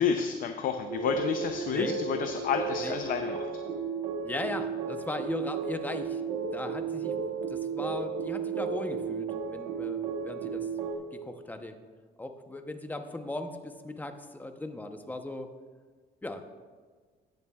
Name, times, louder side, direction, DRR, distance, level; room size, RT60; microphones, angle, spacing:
voice 1, 0.0-3.5, left 7 dB, 55° left, 6 dB, 0.6 m, -30 dB
sound 1, 0.9-10.9, right 5 dB, 90° right, 1.2 m, -34 dB
voice 2, 4.2-6.3 6.5-7.1 7.5-10.7 11.1-11.7 12.2-15.5 16.2-16.4, left 2 dB, 10° left, 6 dB, 0.8 m, -38 dB
19.0 x 7.0 x 2.4 m, 1.5 s
cardioid pair, 110°, 17 cm